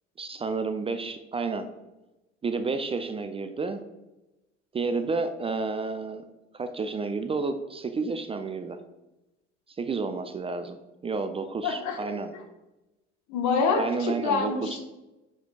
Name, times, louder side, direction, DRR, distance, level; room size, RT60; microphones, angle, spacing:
voice 1, 0.2-1.7 2.4-3.8 4.7-6.2 6.5-8.8 9.8-10.8 11.0-12.3 13.8-14.7, right 4 dB, 15° right, 9 dB, 0.4 m, -30 dB
voice 2, 11.6-12.1 13.3-14.8, left 4 dB, 55° left, 2 dB, 1.2 m, -26 dB
7.8 x 5.9 x 2.3 m, 1.0 s
figure-of-eight pair, 60°, 35 cm